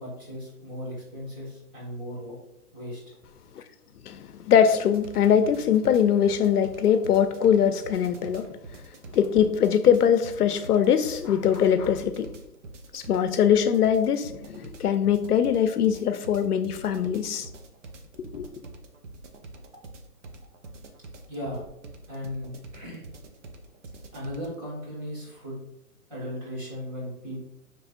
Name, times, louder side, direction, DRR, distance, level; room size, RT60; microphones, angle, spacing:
voice 1, 0.0-2.3 2.7-3.1 21.3-21.6 22.1-23.0 24.1-25.6 26.1-27.4, equal, 30° right, 1.6 m, -36 dB
voice 2, 4.1-8.5 9.1-12.3 12.9-17.5 18.3-18.5, left 8 dB, 85° left, 0.6 m, -22 dB
sound 1, 4.9-24.6, right 3 dB, 55° right, 0.7 m, -45 dB
5.4 x 3.2 x 2.5 m
hypercardioid pair, 155°, 45 cm